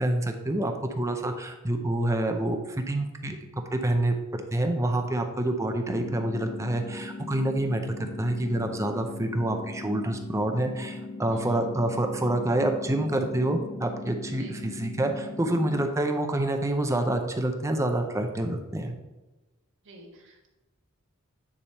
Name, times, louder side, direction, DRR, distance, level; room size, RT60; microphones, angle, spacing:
voice 1, 0.0-3.4 3.7-7.8 8.2-18.9, right 1 dB, 15° right, 4 dB, 0.6 m, -27 dB
sound 1, 5.9-15.9, left 3 dB, 35° left, 0.5 m, -39 dB
voice 2, 11.3-11.6 14.4-14.6 19.8-20.5, right 1 dB, 60° right, -1 dB, 1.8 m, -49 dB
9.6 x 3.5 x 4.3 m, 1.1 s
head